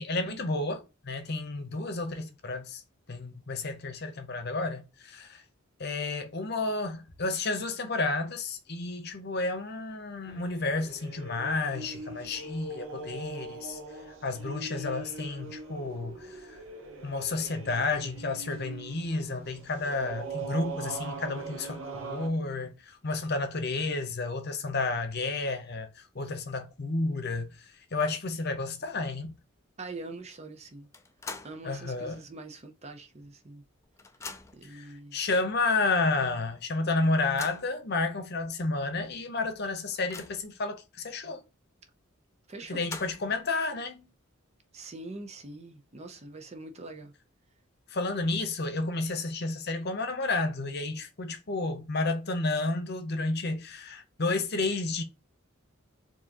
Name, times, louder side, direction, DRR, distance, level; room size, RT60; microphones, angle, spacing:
voice 1, 0.0-2.8 3.1-5.4 5.8-13.8 14.2-16.6 17.0-29.4 31.6-32.2 34.6-41.4 42.7-44.1 47.9-55.0, left 3 dB, 50° left, 0.8 m, -31 dB
sound 1, 10.3-22.3, right 3 dB, 65° right, 1.0 m, -41 dB
voice 2, 29.8-30.9 31.4-33.6 34.5-35.2 42.5-42.9 44.7-47.1, right 2 dB, 30° right, 0.6 m, -43 dB
sound 2, 30.9-31.7 32.1-32.2 33.2-33.3 33.6-34.7 35.5-35.6 36.0-36.1 37.0-37.7 38.4-38.5 38.9-39.0 39.5-40.6 42.5-43.4, left 4 dB, 15° left, 0.3 m, -44 dB
4.6 x 2.8 x 2.8 m
head